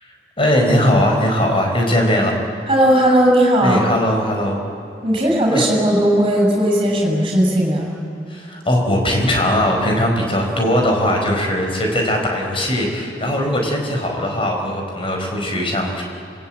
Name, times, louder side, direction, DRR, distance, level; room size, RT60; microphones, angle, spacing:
voice 1, 0.4-2.3 3.6-4.6 5.5-5.6 8.3-16.0, left 1 dB, 30° left, 2 dB, 4.7 m, -19 dB
voice 2, 2.7-3.8 5.0-7.9, right 1 dB, 30° right, -1 dB, 7.7 m, -16 dB
27.0 x 21.0 x 9.1 m, 2.8 s
head